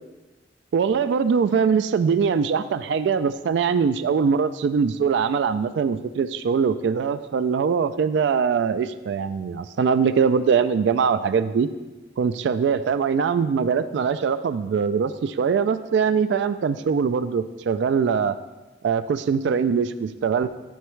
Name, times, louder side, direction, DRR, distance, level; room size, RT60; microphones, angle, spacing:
voice 1, 0.7-11.7 12.2-18.3 18.8-20.5, right 6 dB, 70° right, 11 dB, 0.3 m, -22 dB
8.5 x 8.0 x 3.1 m, 1.1 s
head